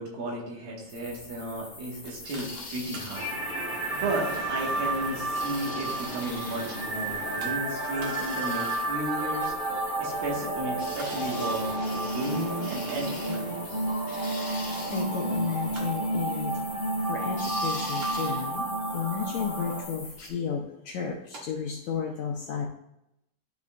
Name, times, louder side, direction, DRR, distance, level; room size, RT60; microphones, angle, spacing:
voice 1, 0.0-3.4 3.9-9.5 10.0-13.6, right 1 dB, 75° right, -3 dB, 3.6 m, -34 dB
sound 1, 0.9-20.3, left 3 dB, 45° left, 0.8 m, -42 dB
Mechanical fan, 2.0-21.4 21.8-21.9, right 2 dB, 50° right, 1.7 m, -44 dB
sound 2, 3.1-19.8, right 2 dB, 30° right, 0.9 m, -31 dB
voice 2, 14.9-16.6 17.0-22.7, left 6 dB, 75° left, 0 dB, 1.7 m, -33 dB
11.5 x 5.3 x 2.6 m, 0.82 s
omnidirectional pair, 4.1 m